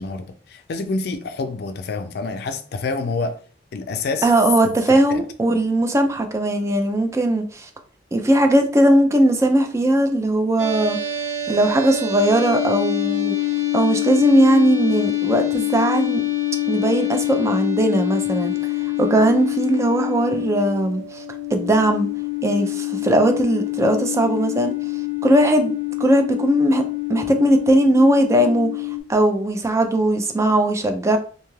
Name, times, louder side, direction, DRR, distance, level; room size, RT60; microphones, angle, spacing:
voice 1, 0.0-3.4 3.7-4.3 4.6-5.2, left 3 dB, 60° left, 0.4 m, -28 dB
voice 2, 4.2-7.7 8.1-11.0 11.5-13.3 13.7-16.2 16.7-18.5 19.0-21.2 21.5-22.1 22.4-24.7 25.2-25.7 26.0-31.2, right 1 dB, 15° right, 0.3 m, -19 dB
sound 1, 10.6-29.0, left 12 dB, 85° right, 0.6 m, -25 dB
2.6 x 2.3 x 3.1 m
head